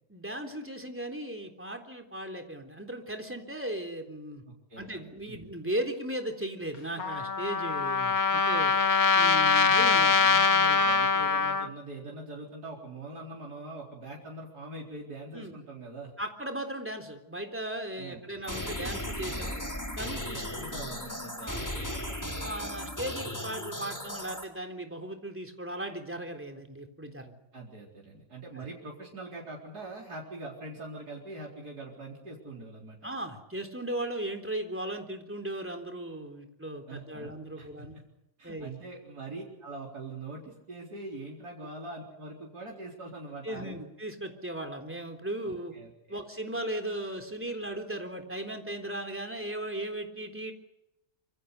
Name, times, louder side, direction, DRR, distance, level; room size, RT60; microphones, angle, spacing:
voice 1, 0.1-4.4 4.8-8.8 9.1-10.1 15.3-15.5 16.2-19.6 20.0-20.4 21.4-21.9 22.4-27.3 28.6-28.7 33.0-37.9 38.4-38.7 43.4-45.7 46.1-50.5, right 1 dB, 10° right, 3 dB, 3.6 m, -37 dB
voice 2, 4.5-5.4 9.7-16.1 18.0-18.3 20.3-21.5 21.7-22.2 27.5-33.0 36.9-38.0 38.4-43.9 45.4-46.2, right 2 dB, 85° right, -2 dB, 4.7 m, -43 dB
Trumpet, 7.0-11.7, left 5 dB, 65° left, 2.2 m, -23 dB
sound 1, 18.4-24.4, left 1 dB, 10° left, 4.1 m, -36 dB
26.5 x 25.5 x 6.8 m, 0.85 s
omnidirectional pair, 1.6 m